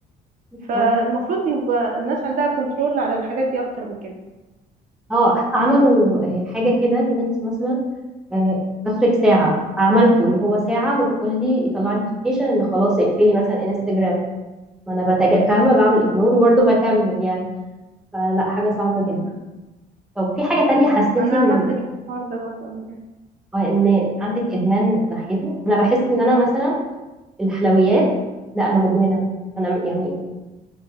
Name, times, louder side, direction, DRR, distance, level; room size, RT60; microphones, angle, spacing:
voice 1, 0.7-4.1 16.2-16.7 21.2-21.8 22.1-22.8, right 3 dB, 55° right, 0 dB, 0.4 m, -23 dB
voice 2, 5.1-7.8 8.3-8.6 8.8-14.2 14.9-17.5 18.1-19.2 20.2-21.6 23.5-26.8 27.4-28.1 28.5-29.2 29.6-30.1, right 1 dB, 5° right, -3 dB, 0.6 m, -18 dB
3.2 x 2.1 x 2.2 m, 1.1 s
cardioid pair, 110°, 17 cm